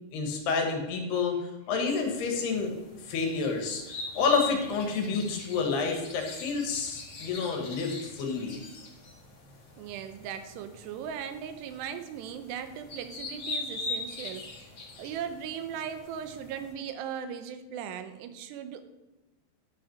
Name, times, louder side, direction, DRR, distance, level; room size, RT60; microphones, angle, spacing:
voice 1, 0.1-1.4 1.7-2.7 3.0-8.6, left 5 dB, 75° left, 3 dB, 3.5 m, -29 dB
sound 1, 1.9-16.7, left 3 dB, 40° left, 1.9 m, -42 dB
voice 2, 9.8-14.6 15.0-18.8, right 8 dB, 90° right, 9 dB, 3.0 m, -38 dB
11.0 x 5.8 x 6.3 m, 1.1 s
omnidirectional pair, 4.8 m